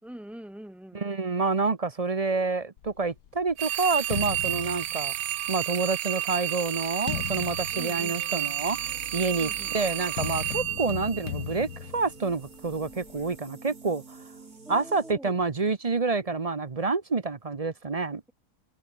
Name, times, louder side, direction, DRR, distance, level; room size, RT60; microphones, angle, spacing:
voice 1, 0.0-1.0 7.7-8.2 9.4-9.7 10.7-10.8 14.6-15.4, right 1 dB, ahead, 3.3 m, -44 dB
voice 2, 0.9-5.1 5.5-11.7 11.9-14.2 14.7-18.2, right 4 dB, 30° right, 0.7 m, -28 dB
sound 1, 2.8-5.6 6.3-13.4, left 10 dB, 85° left, 1.7 m, -39 dB
sound 2, 3.6-11.8, right 13 dB, 85° right, 0.6 m, -31 dB
sound 3, 8.0-15.1, right 4 dB, 60° right, 3.6 m, -49 dB
omnidirectional pair, 1.7 m